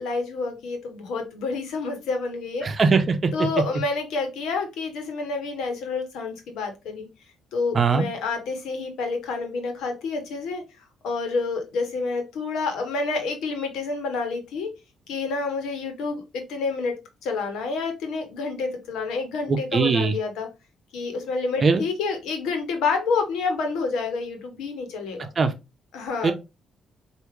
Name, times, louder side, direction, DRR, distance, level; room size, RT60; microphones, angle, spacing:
voice 1, 0.0-2.7 3.3-7.1 7.5-10.6 11.0-14.7 15.1-20.5 20.9-25.3 25.9-26.3, left 4 dB, 85° left, 1.3 m, -28 dB
voice 2, 2.6-3.3 7.7-8.1 19.5-20.1 21.6-21.8 25.4-25.5 26.2-26.3, right 4 dB, 40° right, 0.8 m, -20 dB
4.8 x 2.7 x 3.2 m
cardioid pair, 90°, 0 cm